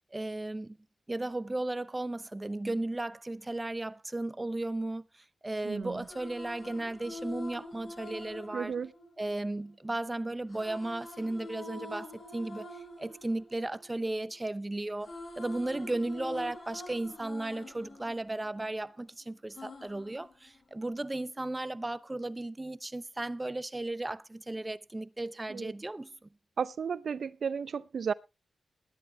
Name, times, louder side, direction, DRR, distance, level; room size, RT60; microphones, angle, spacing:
voice 1, 0.1-0.8 1.1-5.0 5.4-8.7 9.2-12.7 13.0-26.3, right 2 dB, 20° right, 0.7 m, -35 dB
voice 2, 5.6-6.0 8.5-8.9 25.5-25.7 26.6-28.1, right 6 dB, 70° right, 0.6 m, -33 dB
sound 1, 5.8-9.9 10.5-14.5 14.8-19.0 19.5-21.0, left 1 dB, 60° left, 6.3 m, -46 dB
21.0 x 10.5 x 2.3 m
cardioid pair, 60°, 0 cm